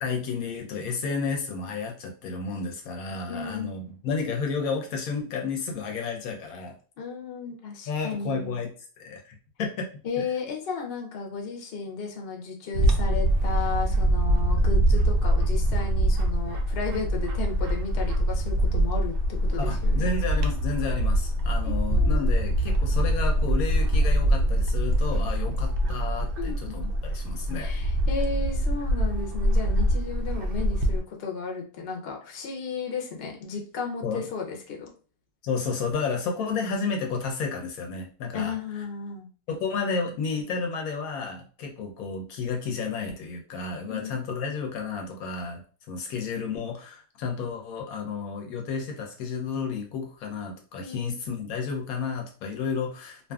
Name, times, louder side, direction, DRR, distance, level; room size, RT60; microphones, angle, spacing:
voice 1, 0.0-6.7 7.9-8.7 9.0-9.9 10.2-10.3 19.6-27.7 34.0-34.2 35.4-38.5 39.5-45.6 45.9-53.3, left 5 dB, 80° left, 2 dB, 1.1 m, -31 dB
voice 2, 3.3-3.7 7.0-8.6 10.0-20.1 21.6-22.3 25.4-25.5 26.4-26.8 27.5-34.9 38.3-39.3 43.9-44.2 50.8-51.2, left 5 dB, 55° left, 1 dB, 0.8 m, -34 dB
Bird / Wind, 12.7-31.0, right 1 dB, 85° right, 0.5 m, -24 dB
2.6 x 2.5 x 2.3 m, 0.39 s
omnidirectional pair, 1.5 m